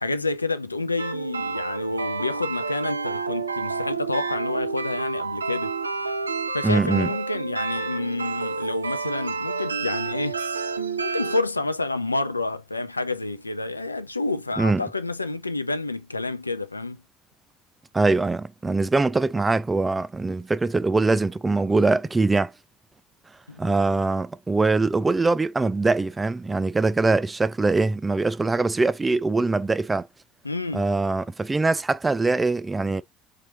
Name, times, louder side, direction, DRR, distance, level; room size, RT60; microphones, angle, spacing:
voice 1, 0.0-5.7 6.5-10.4 11.0-17.0 23.5-23.6 30.4-30.8, left 2 dB, 85° left, 0.4 m, -29 dB
sound 1, 1.0-11.4, right 4 dB, 80° right, 0.5 m, -29 dB
voice 2, 6.6-7.1 14.6-14.8 17.9-22.5 23.6-30.1 30.7-33.0, right 3 dB, 15° right, 0.4 m, -22 dB
4.3 x 3.7 x 2.9 m
figure-of-eight pair, 65°, 0 cm